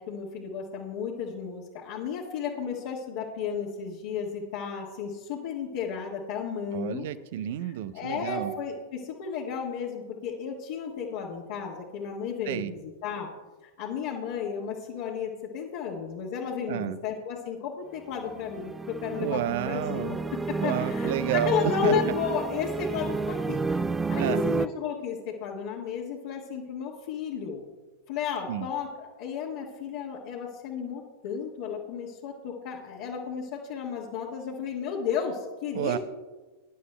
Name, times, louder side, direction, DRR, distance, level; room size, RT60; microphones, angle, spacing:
voice 1, 0.0-7.1 7.9-13.3 13.8-20.2 20.5-27.6 28.1-36.0, left 7 dB, 50° left, -5 dB, 1.6 m, -33 dB
voice 2, 6.7-8.5 12.5-12.7 16.7-17.0 19.2-20.1 20.6-22.2 24.2-24.5 28.5-28.7 35.7-36.0, right 11 dB, 55° right, 14 dB, 0.7 m, -30 dB
sound 1, 18.1-24.7, right 3 dB, 10° right, 0.4 m, -30 dB
23.0 x 11.0 x 2.2 m, 1.3 s
figure-of-eight pair, 90°, 0 cm